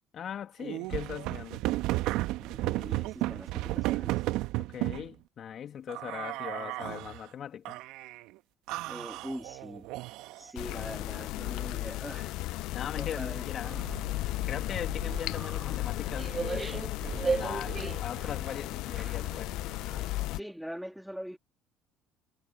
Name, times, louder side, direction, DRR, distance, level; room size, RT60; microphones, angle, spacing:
voice 1, 0.1-1.6 4.7-7.8 12.7-13.8 14.5-16.8 17.1-19.5, left 9 dB, 50° left, 2.6 m, -40 dB
sound 1, 0.6-5.1 5.9-7.2 7.6-8.2 8.7-10.5, right 18 dB, 70° right, 1.4 m, -33 dB
voice 2, 2.4-4.2 8.9-9.9 10.4-12.4 12.9-13.5 20.3-21.4, equal, ahead, 2.9 m, -42 dB
sound 2, 10.6-20.4, left 18 dB, 70° left, 0.7 m, -35 dB
sound 3, 13.6-20.1, right 4 dB, 30° right, 2.2 m, -37 dB
hypercardioid pair, 55°, 0 cm